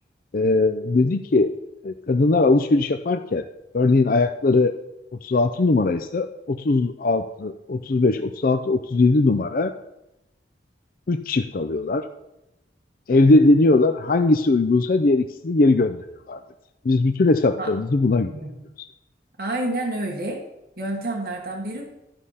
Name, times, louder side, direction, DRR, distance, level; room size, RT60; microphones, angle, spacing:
voice 1, 0.3-1.5 1.8-3.4 3.7-4.7 5.2-9.7 11.1-12.0 13.1-16.4 16.8-18.3, left 2 dB, 50° left, 9 dB, 0.4 m, -20 dB
voice 2, 18.2-18.7 19.4-20.4 20.8-21.9, right 1 dB, 55° right, -1 dB, 1.4 m, -29 dB
13.0 x 5.0 x 5.6 m, 0.92 s
head